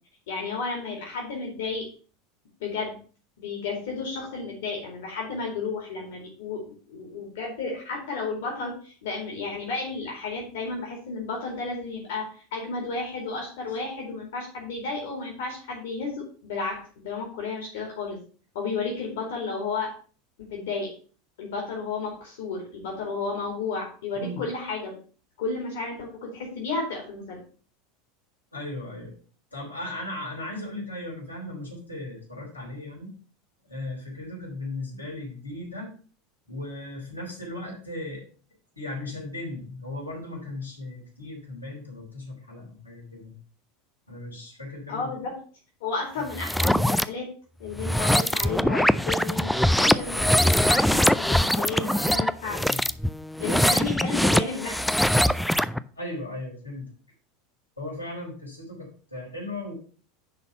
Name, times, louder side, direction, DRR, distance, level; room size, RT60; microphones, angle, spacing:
voice 1, 0.3-1.9 2.6-3.0 3.4-6.6 6.9-18.2 18.5-19.9 20.5-20.9 21.4-25.0 25.4-27.4 44.9-45.4 45.8-47.3 47.6-52.6 53.4-54.8, left 4 dB, 60° left, 0 dB, 2.4 m, -32 dB
voice 2, 28.5-29.1 29.5-33.1 33.6-36.0 36.5-38.2 38.8-43.3 44.1-45.1 46.2-46.3 52.6-52.8 56.0-56.9 57.8-59.7, left 2 dB, 85° left, -2 dB, 3.3 m, -37 dB
sound 1, 46.3-47.0 47.7-55.8, equal, ahead, 0.4 m, -22 dB
10.0 x 4.2 x 5.5 m, 0.42 s
figure-of-eight pair, 80°, 0 cm